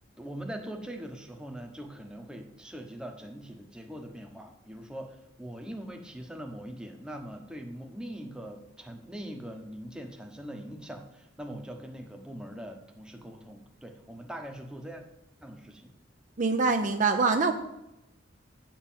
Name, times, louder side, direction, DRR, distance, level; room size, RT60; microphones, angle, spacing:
voice 1, 0.2-15.0 15.4-15.9, right 1 dB, 5° right, 3 dB, 0.9 m, -42 dB
voice 2, 16.4-17.5, right 4 dB, 40° right, 5 dB, 0.6 m, -24 dB
8.2 x 4.5 x 7.2 m, 0.90 s
head